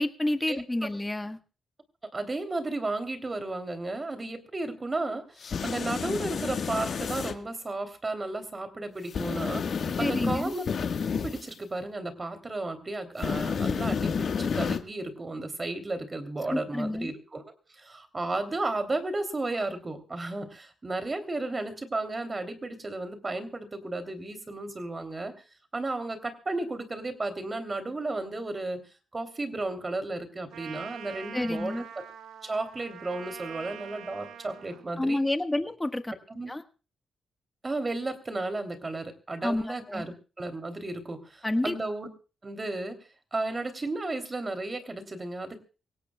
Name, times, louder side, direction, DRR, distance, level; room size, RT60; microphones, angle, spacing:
voice 1, 0.0-1.4 10.0-10.5 16.5-17.1 31.3-31.8 35.0-36.1 36.5-36.6 39.4-40.0 41.4-41.7, left 1 dB, 15° left, 8 dB, 1.5 m, -29 dB
voice 2, 2.1-10.7 11.2-25.3 25.7-28.8 29.1-31.8 32.4-35.2 36.3-36.5 37.6-42.1 42.4-43.0 43.3-45.6, right 2 dB, 30° right, 8 dB, 3.2 m, -33 dB
sound 1, 5.4-7.3 9.1-11.4 13.2-14.8, left 6 dB, 60° left, 1.6 m, -30 dB
Trumpet, 30.5-34.8, right 9 dB, 85° right, 1.2 m, -44 dB
24.0 x 17.5 x 2.4 m, 0.34 s
cardioid pair, 80°, 0 cm